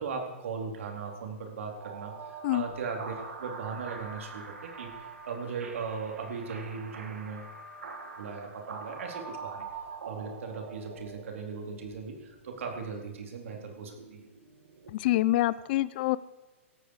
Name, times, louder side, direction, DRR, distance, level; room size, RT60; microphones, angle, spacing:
voice 1, 0.0-7.5 8.2-9.6 10.1-14.2, right 5 dB, 70° right, 2 dB, 4.1 m, -38 dB
sound 1, 1.8-14.9, right 4 dB, 90° right, 2.7 m, -45 dB
voice 2, 14.9-16.2, left 16 dB, 45° left, 18 dB, 0.7 m, -26 dB
19.5 x 13.5 x 4.9 m, 1.1 s
hypercardioid pair, 140°, 7 cm